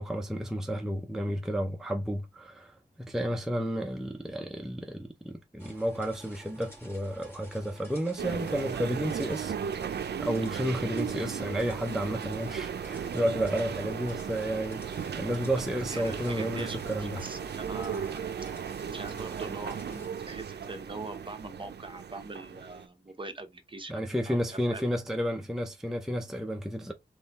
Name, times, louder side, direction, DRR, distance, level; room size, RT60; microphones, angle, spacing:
voice 1, 0.0-9.5 10.2-17.2 23.9-26.9, equal, ahead, 0.6 m, -32 dB
sound 1, 5.6-20.1, right 1 dB, 15° left, 2.0 m, -52 dB
sound 2, 8.2-22.9, right 7 dB, 70° right, 0.5 m, -36 dB
voice 2, 15.9-18.3 18.9-24.4 24.7-24.8, right 2 dB, 30° right, 0.8 m, -42 dB
3.8 x 3.1 x 4.0 m
wide cardioid pair, 100°, 18 cm